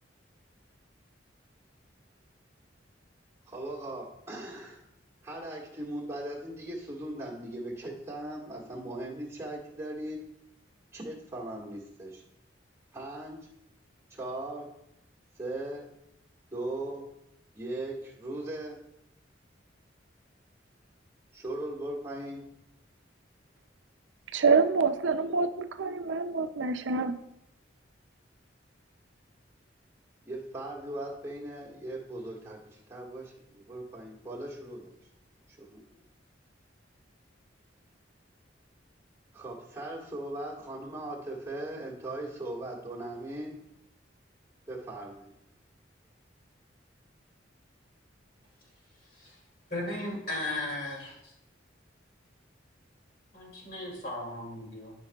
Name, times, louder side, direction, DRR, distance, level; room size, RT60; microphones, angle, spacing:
voice 1, 3.5-4.8 5.2-10.2 10.9-12.2 12.9-13.4 14.1-14.7 15.4-15.9 16.5-17.0 17.6-18.8 21.3-22.4 30.2-34.9 35.6-35.9 39.3-43.6 44.7-45.3, right 1 dB, 15° right, 1.8 m, -39 dB
voice 2, 24.3-27.2, right 4 dB, 80° right, 0.5 m, -26 dB
voice 3, 49.7-51.3 53.3-54.9, left 1 dB, 50° left, 2.6 m, -36 dB
12.5 x 5.4 x 2.4 m
head